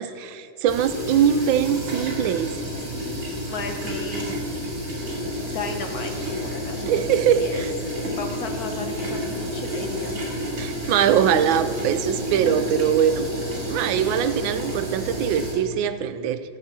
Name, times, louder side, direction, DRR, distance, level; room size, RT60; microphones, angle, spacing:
voice 1, 0.0-2.6 4.3-4.4 6.9-7.7 10.6-13.3 13.7-16.4, right 9 dB, 90° right, 12 dB, 1.4 m, -22 dB
sound 1, 0.7-15.5, equal, 45° right, 3.1 m, -30 dB
voice 2, 2.4-4.6 5.2-7.0 7.3-7.6 8.1-10.4, left 4 dB, 55° left, 5 dB, 1.3 m, -36 dB
14.5 x 5.7 x 7.5 m, 2.2 s
omnidirectional pair, 2.1 m